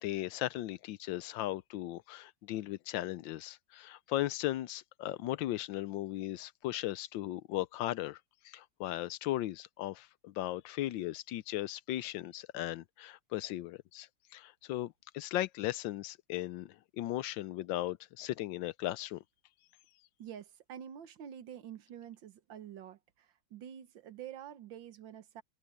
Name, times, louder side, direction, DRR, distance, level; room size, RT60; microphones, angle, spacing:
voice 1, 0.0-8.2 8.4-14.1 14.3-19.2, left 15 dB, 85° left, 1.4 m, -37 dB
voice 2, 20.2-23.0 23.5-25.4, right 9 dB, 85° right, 1.8 m, -47 dB
open air
omnidirectional pair, 2.0 m